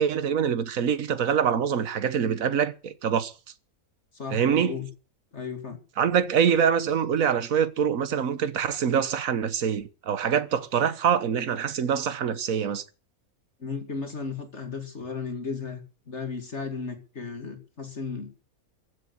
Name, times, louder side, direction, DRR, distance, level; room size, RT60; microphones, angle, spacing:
voice 1, 0.0-3.3 4.3-4.7 6.0-12.8, right 7 dB, 65° right, 1.6 m, -25 dB
voice 2, 4.1-4.9 5.3-5.8 13.6-18.4, left 5 dB, 50° left, 2.6 m, -35 dB
15.0 x 8.1 x 8.4 m
omnidirectional pair, 1.6 m